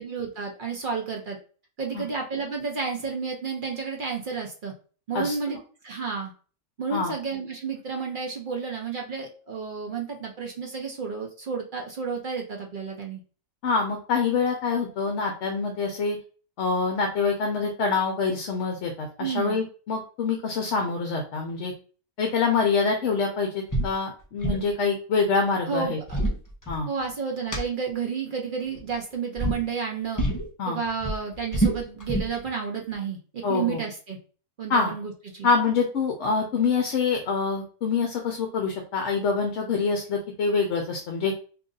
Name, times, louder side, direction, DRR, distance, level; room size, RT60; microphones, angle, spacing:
voice 1, 0.0-1.4 1.8-4.7 5.1-5.6 5.8-6.3 6.8-13.2 19.2-19.6 25.7-26.2 26.9-30.2 30.7-34.2 34.6-35.5, right 5 dB, 55° right, 1 dB, 0.6 m, -31 dB
voice 2, 13.6-16.2 16.6-21.7 22.2-26.0 26.7-26.9 30.6-30.8 33.4-33.8 34.7-34.9 35.4-41.3, left 4 dB, 60° left, 3 dB, 0.9 m, -25 dB
sound 1, 23.7-23.9 24.2-24.7 25.8-27.1 27.5-27.6 28.7-29.0 29.4-29.6 30.2-30.5 30.8-32.4, right 1 dB, 20° left, 0.7 m, -26 dB
2.8 x 2.5 x 3.7 m, 0.38 s
omnidirectional pair, 1.5 m